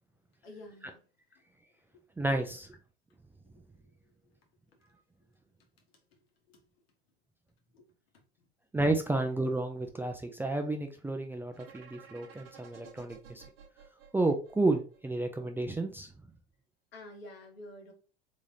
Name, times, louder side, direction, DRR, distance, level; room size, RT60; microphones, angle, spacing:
voice 1, 0.4-1.0 1.3-1.4 1.9-2.0 3.5-3.6 4.2-4.3 6.5-6.6 7.7-8.5 16.9-17.9, left 1 dB, 75° left, 1.3 m, -50 dB
voice 2, 2.2-2.7 8.7-13.4 14.1-16.1, right 2 dB, 5° right, 0.4 m, -31 dB
sound 1, 11.5-15.4, right 7 dB, 70° right, 1.1 m, -54 dB
3.6 x 3.4 x 2.7 m
figure-of-eight pair, 80°, 31 cm